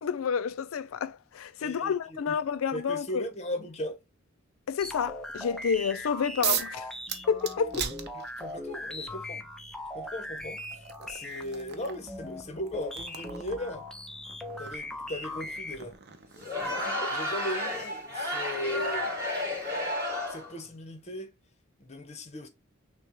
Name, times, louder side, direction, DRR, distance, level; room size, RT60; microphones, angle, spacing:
voice 1, 0.0-3.3 4.7-6.9 7.3-7.9, left 6 dB, 85° left, 0.4 m, -30 dB
voice 2, 1.6-2.4 2.7-4.0 8.4-9.5 9.9-13.9 14.6-16.0 16.6-19.2 20.3-21.3 21.8-22.5, left 1 dB, 35° left, 1.0 m, -38 dB
sound 1, 4.8-15.9, left 1 dB, 5° left, 0.6 m, -40 dB
sound 2, 6.4-6.8 7.1-8.6 9.8-9.9 10.4-17.0, right 9 dB, 55° right, 0.7 m, -38 dB
Crowd, 16.4-20.6, left 1 dB, 15° right, 2.6 m, -32 dB
6.4 x 2.3 x 3.1 m
head